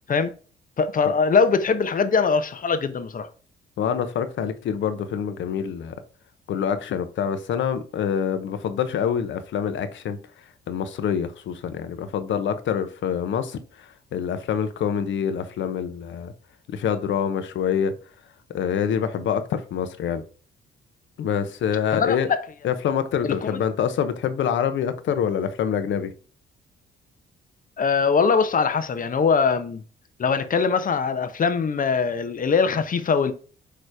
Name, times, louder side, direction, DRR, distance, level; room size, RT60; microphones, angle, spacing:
voice 1, 0.8-3.3 21.9-22.4 23.2-23.6 27.8-29.8 30.2-33.3, left 5 dB, 45° left, 0.9 m, -22 dB
voice 2, 3.8-6.0 6.5-10.2 10.7-16.3 16.7-17.9 18.5-20.2 21.2-22.3 22.6-26.1, left 8 dB, 70° left, 0.9 m, -26 dB
6.8 x 3.2 x 4.7 m
cardioid pair, 90°, 20 cm